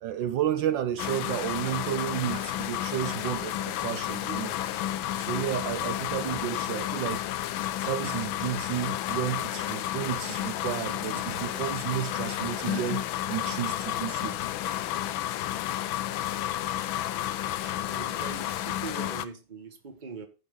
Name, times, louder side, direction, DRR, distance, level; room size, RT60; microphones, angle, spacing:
voice 1, 0.0-4.9 5.2-7.2 7.8-14.4 14.7-14.8 17.6-17.8, right 11 dB, 75° right, 1.3 m, -32 dB
sound 1, 1.0-19.3, left 13 dB, 85° left, 1.4 m, -31 dB
voice 2, 17.9-20.3, right 5 dB, 25° right, 1.5 m, -41 dB
15.0 x 5.5 x 3.7 m
omnidirectional pair, 2.1 m